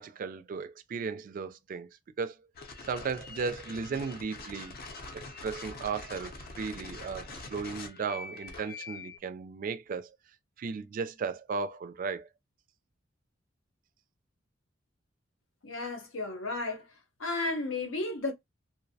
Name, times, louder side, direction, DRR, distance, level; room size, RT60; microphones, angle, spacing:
voice 1, 0.0-1.9 2.2-2.4 2.9-4.8 5.1-10.1 10.6-12.3, right 5 dB, 45° right, 0.3 m, -35 dB
sound 1, 2.5-9.2, left 3 dB, 50° left, 0.5 m, -44 dB
voice 2, 15.6-16.9 17.2-18.3, left 2 dB, 90° left, 0.7 m, -33 dB
2.5 x 2.0 x 2.6 m
head